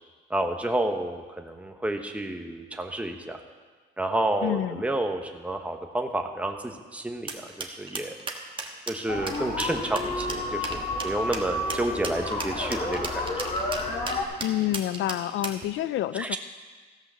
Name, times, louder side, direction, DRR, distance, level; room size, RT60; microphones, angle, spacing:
voice 1, 0.3-3.4 4.0-8.1 8.9-13.3 16.2-16.4, right 1 dB, 5° right, 4 dB, 1.1 m, -30 dB
voice 2, 4.4-4.8 14.4-16.4, left 13 dB, 75° left, 16 dB, 0.4 m, -28 dB
sound 1, 7.3-15.6, right 3 dB, 25° right, 1.3 m, -35 dB
sound 2, 9.1-14.2, left 2 dB, 35° left, 1.9 m, -31 dB
14.5 x 5.7 x 6.9 m, 1.4 s
cardioid pair, 90°, 20 cm